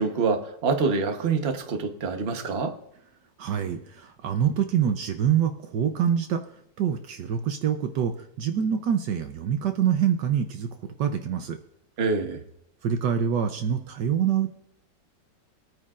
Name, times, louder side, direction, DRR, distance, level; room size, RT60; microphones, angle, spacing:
voice 1, 0.0-2.7 12.0-12.4, right 4 dB, 40° right, 1.2 m, -26 dB
voice 2, 3.4-6.4 6.8-11.6 12.8-14.5, right 8 dB, 70° right, 1.3 m, -25 dB
21.5 x 9.3 x 2.5 m
omnidirectional pair, 2.0 m